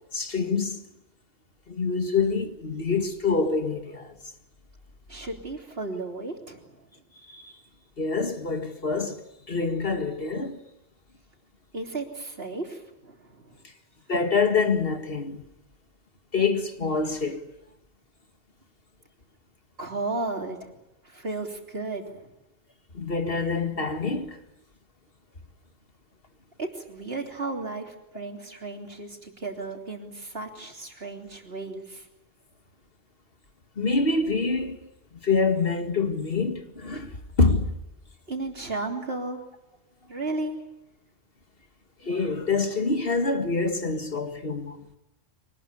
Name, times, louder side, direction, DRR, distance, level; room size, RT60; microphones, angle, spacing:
voice 1, 0.1-0.8 1.7-4.2 7.3-7.5 8.0-10.6 14.1-15.4 16.3-17.4 22.9-24.4 33.8-34.8 35.2-37.8 42.0-44.8, left 4 dB, 60° left, 2.3 m, -26 dB
voice 2, 5.1-6.8 11.7-13.6 19.8-20.8 21.0-22.3 26.6-32.1 38.3-39.4 40.1-40.6, right 2 dB, 65° right, 3.5 m, -34 dB
24.5 x 19.5 x 9.9 m
omnidirectional pair, 1.1 m